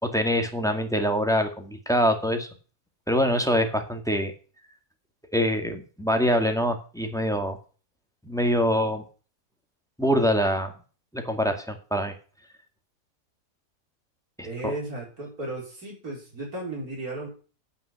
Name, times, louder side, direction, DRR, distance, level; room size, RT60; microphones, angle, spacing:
voice 1, 0.0-2.5 3.1-4.3 5.3-7.6 8.2-9.0 10.0-10.7 11.1-12.1 14.4-14.7, equal, ahead, 5 dB, 1.8 m, -24 dB
voice 2, 14.4-17.3, right 2 dB, 70° right, -1 dB, 4.6 m, -34 dB
9.3 x 9.1 x 5.8 m, 0.37 s
omnidirectional pair, 1.6 m